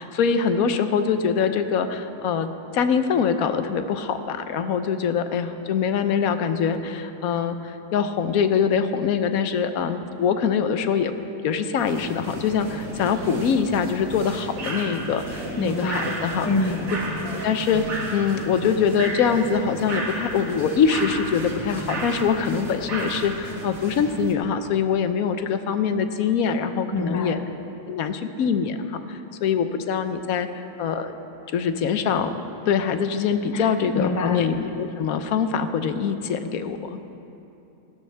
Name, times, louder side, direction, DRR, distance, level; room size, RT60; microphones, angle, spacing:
voice 1, 0.0-11.1 11.4-16.5 17.4-17.8 18.1-27.4 27.9-31.1 31.5-32.3 32.7-37.0, left 6 dB, 80° left, 9 dB, 1.1 m, -24 dB
sound 1, 11.8-24.3, right 2 dB, 75° right, 1.8 m, -33 dB
voice 2, 15.6-16.2 16.4-16.9 26.9-27.4 33.5-34.4, left 2 dB, 25° left, 4 dB, 0.3 m, -26 dB
15.5 x 13.0 x 3.4 m, 2.9 s
omnidirectional pair, 1.5 m